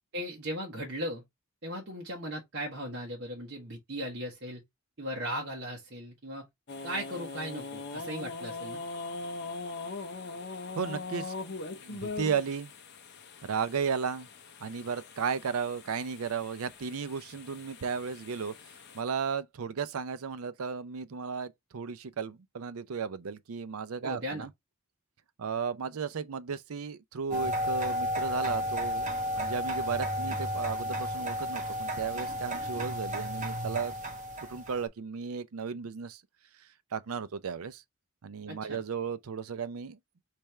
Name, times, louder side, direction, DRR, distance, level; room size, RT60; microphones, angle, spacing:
voice 1, 0.1-1.2 1.6-4.6 5.0-6.5 6.8-8.8 24.0-24.5 38.5-38.8, equal, 55° right, 1.3 m, -37 dB
sound 1, 6.7-19.0, left 3 dB, 50° left, 0.8 m, -41 dB
voice 2, 10.8-11.3 11.8-12.7 13.4-14.3 14.6-18.5 18.9-24.5 25.4-33.9 34.5-36.2 36.9-37.8 38.2-40.0, right 6 dB, 80° right, 0.5 m, -34 dB
sound 2, 27.3-34.8, equal, 35° right, 1.1 m, -33 dB
3.4 x 3.4 x 4.3 m
head